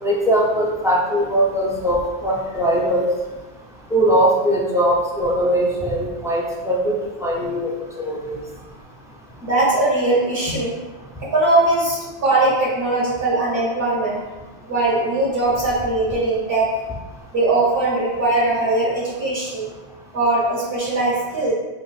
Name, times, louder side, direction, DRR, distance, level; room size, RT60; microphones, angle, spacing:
voice 1, 0.0-3.1 3.9-7.7 8.0-8.4, right 1 dB, 5° right, -4 dB, 0.3 m, -20 dB
voice 2, 9.4-10.7 11.2-14.2 14.7-16.7 17.3-19.7 20.1-21.5, right 2 dB, 55° right, -7 dB, 1.8 m, -20 dB
5.3 x 2.8 x 2.4 m, 1.2 s
omnidirectional pair, 1.2 m